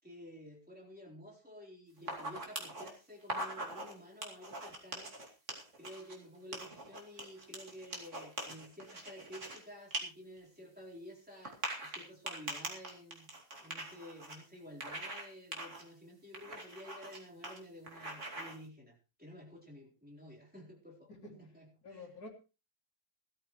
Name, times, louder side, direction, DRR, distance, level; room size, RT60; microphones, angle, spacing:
voice 1, 0.0-5.1 5.8-13.3 13.6-22.1, equal, 5° right, -3 dB, 4.1 m, -52 dB
sound 1, 2.0-2.9 3.2-3.9 4.2-6.1 6.5-9.6 9.9-10.0 10.4-10.5 11.4-14.3 14.8-15.2 15.5-15.8 16.3-17.2 17.4-17.6 17.8-18.6, right 2 dB, 40° right, 2.9 m, -42 dB
voice 2, 21.1-21.4 21.8-22.3, left 2 dB, 50° left, -1 dB, 3.3 m, -49 dB
18.5 x 13.0 x 3.2 m, 0.31 s
omnidirectional pair, 2.0 m